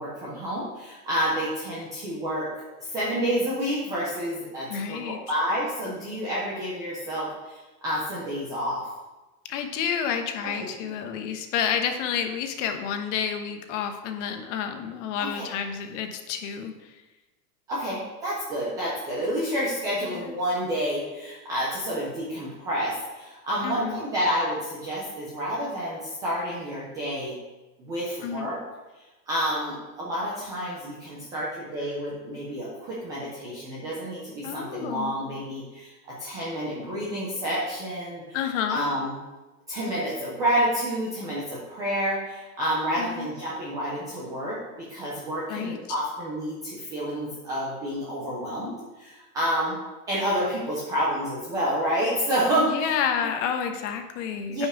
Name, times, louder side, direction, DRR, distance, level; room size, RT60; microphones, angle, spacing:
voice 1, 0.0-8.9 10.6-10.9 15.2-15.5 17.7-27.4 27.8-28.6 29.3-38.2 38.7-39.2 39.7-49.8 50.1-53.0 54.5-54.7, equal, 10° right, -7 dB, 0.3 m, -29 dB
voice 2, 4.7-5.2 9.5-17.0 20.0-20.4 23.6-24.0 28.2-28.5 34.4-35.1 38.3-38.9 43.0-43.3 45.5-45.8 52.7-54.7, left 8 dB, 45° left, 6 dB, 1.1 m, -30 dB
8.9 x 5.6 x 4.9 m, 1.1 s
supercardioid pair, 145°, 49 cm